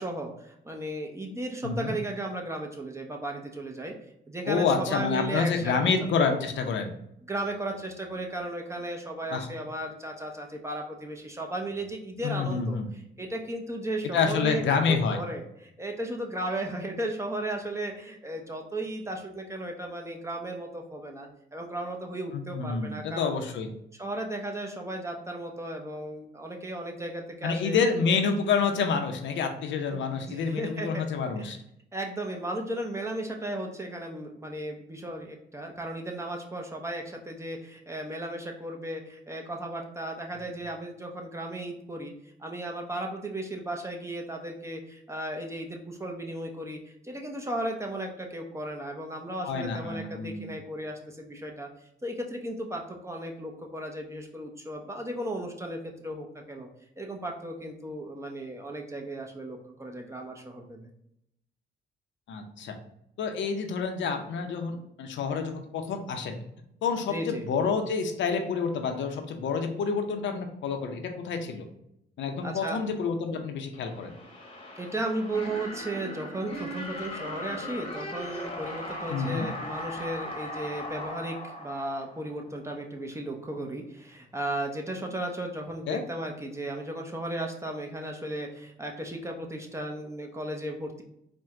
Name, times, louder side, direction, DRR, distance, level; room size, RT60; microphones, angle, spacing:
voice 1, 0.0-3.9 4.3-6.5 7.3-14.6 14.9-23.3 24.0-27.8 29.9-31.0 31.4-31.5 31.9-42.1 42.4-51.7 52.0-56.7 57.0-60.9 67.1-67.5 72.4-72.8 74.8-91.0, right 1 dB, 15° right, 2 dB, 0.7 m, -35 dB
voice 2, 1.6-1.9 4.5-6.9 9.3-9.5 12.2-12.9 14.1-15.2 22.3-23.7 27.4-31.6 49.4-50.5 62.3-62.8 63.2-66.4 66.8-71.7 72.2-74.1 79.1-79.5 85.9-86.0, left 5 dB, 70° left, 5 dB, 0.6 m, -28 dB
sound 1, 73.7-82.6, left 1 dB, 30° left, 1.0 m, -38 dB
4.4 x 2.2 x 3.6 m, 0.77 s
cardioid pair, 90°, 20 cm